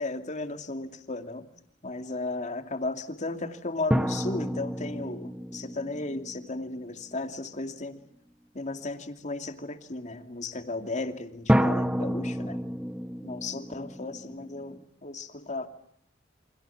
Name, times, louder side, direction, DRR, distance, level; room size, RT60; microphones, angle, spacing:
voice 1, 0.0-1.5 1.8-8.0 8.5-12.6 13.2-15.7, left 2 dB, 40° left, 7 dB, 2.6 m, -35 dB
sound 1, 3.9-7.3 11.5-14.8, equal, 5° right, 1.1 m, -29 dB
29.5 x 26.0 x 7.2 m, 0.67 s
head